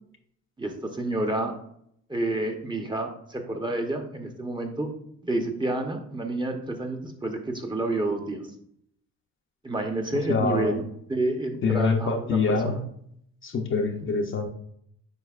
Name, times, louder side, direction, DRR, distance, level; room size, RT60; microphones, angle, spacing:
voice 1, 0.6-1.5 2.1-4.9 5.2-8.5 9.6-10.8 11.1-12.8 14.0-14.1, right 2 dB, 15° right, 3 dB, 1.0 m, -29 dB
voice 2, 10.3-10.8 11.6-12.8 13.4-14.5, left 4 dB, 40° left, 4 dB, 0.8 m, -25 dB
8.1 x 5.0 x 2.5 m, 0.70 s
cardioid pair, 90°, 30 cm